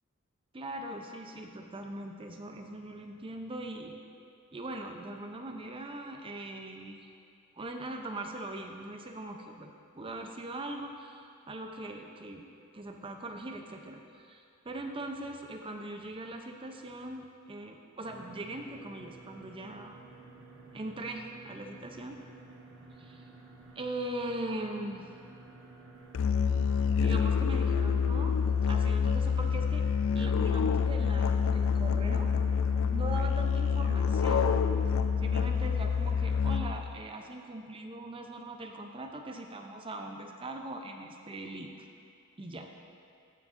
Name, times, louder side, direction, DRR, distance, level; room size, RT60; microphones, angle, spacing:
voice 1, 0.5-4.0 4.5-7.1 7.6-12.4 12.7-20.1 20.7-22.2 23.0-23.2 23.8-25.1 27.0-29.9 30.1-32.6 32.9-34.5 35.2-41.7 42.4-42.7, right 1 dB, 25° right, 4 dB, 0.6 m, -41 dB
sound 1, 18.0-36.8, right 2 dB, 60° right, 1.0 m, -52 dB
Musical instrument, 26.1-36.9, left 6 dB, 65° left, 0.3 m, -27 dB
14.0 x 6.1 x 2.6 m, 2.6 s
head